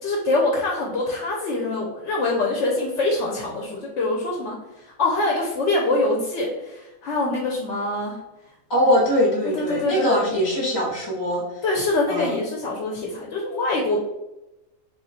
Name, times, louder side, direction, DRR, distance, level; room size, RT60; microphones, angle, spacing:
voice 1, 0.0-4.6 5.0-8.1 9.6-10.2 11.6-14.0, left 2 dB, 65° left, -1 dB, 0.8 m, -24 dB
voice 2, 8.7-11.7 12.1-12.4, equal, 25° left, -4 dB, 0.6 m, -22 dB
3.0 x 2.4 x 4.0 m, 0.97 s
omnidirectional pair, 1.5 m